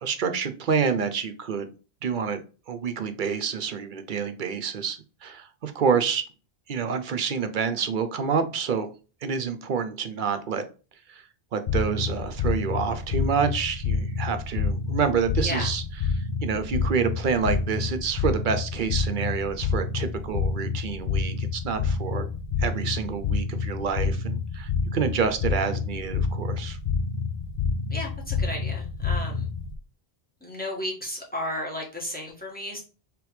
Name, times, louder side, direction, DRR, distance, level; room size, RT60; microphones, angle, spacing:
voice 1, 0.0-1.7 2.0-2.4 2.7-6.2 6.7-8.9 9.2-10.6 11.1-11.2 11.5-15.8 16.4-22.3 22.6-26.8, right 6 dB, 60° right, 8 dB, 0.7 m, -28 dB
sound 1, 11.7-29.7, left 5 dB, 55° left, 0.6 m, -28 dB
voice 2, 15.4-15.7 27.9-29.5 30.4-32.8, left 1 dB, 10° left, -3 dB, 1.4 m, -33 dB
3.4 x 3.4 x 4.7 m, 0.35 s
omnidirectional pair, 1.0 m